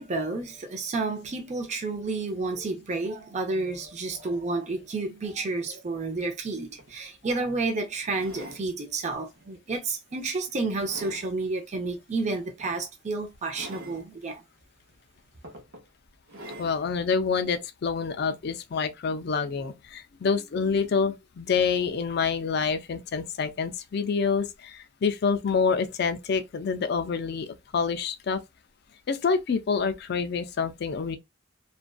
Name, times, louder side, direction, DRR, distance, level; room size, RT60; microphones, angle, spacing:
voice 1, 0.0-14.4, right 3 dB, 35° right, 0.5 m, -30 dB
sound 1, 6.4-6.5 6.8-7.0 8.1-8.7 9.3-9.6 10.1-11.3 12.6-12.8 13.5-14.0 14.9-15.0 15.4-15.9 16.3-16.8 17.6-17.7, right 1 dB, 65° right, 0.8 m, -44 dB
voice 2, 16.6-28.4 29.1-31.2, left 5 dB, 55° left, 0.4 m, -27 dB
2.5 x 2.2 x 2.2 m
head